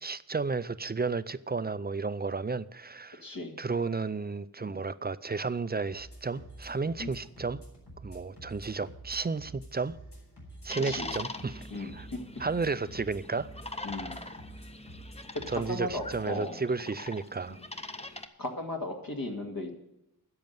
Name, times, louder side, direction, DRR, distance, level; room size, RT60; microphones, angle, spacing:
voice 1, 0.0-3.2 3.6-7.6 8.0-9.9 10.6-12.1 12.4-13.5 15.5-17.6, right 4 dB, 25° right, 0.4 m, -33 dB
voice 2, 3.2-3.6 4.6-4.8 7.0-7.1 10.8-11.1 11.7-12.2 13.8-14.3 15.5-16.6 17.5-17.6 18.4-19.7, left 1 dB, 60° left, 2.2 m, -36 dB
sound 1, 5.9-16.3, right 1 dB, 85° left, 4.0 m, -49 dB
sound 2, 10.7-18.3, left 2 dB, 15° left, 0.8 m, -43 dB
10.5 x 6.8 x 9.2 m
wide cardioid pair, 70°, 39 cm